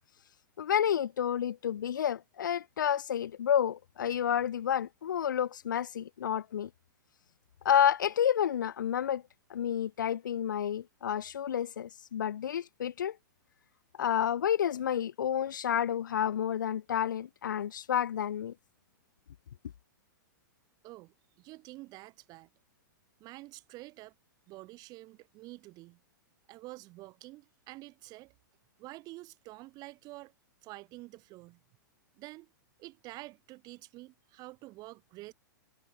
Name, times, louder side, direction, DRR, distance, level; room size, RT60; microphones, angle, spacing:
voice 1, 0.6-6.7 7.6-9.2 9.5-13.2 14.0-18.5, left 9 dB, 75° left, 0.4 m, -30 dB
voice 2, 20.8-22.5 23.2-24.1 24.5-26.0 26.5-28.3 28.8-30.3 30.6-31.6 32.1-32.5 32.8-35.3, right 20 dB, 40° right, 6.3 m, -48 dB
hypercardioid pair, 110°, 11 cm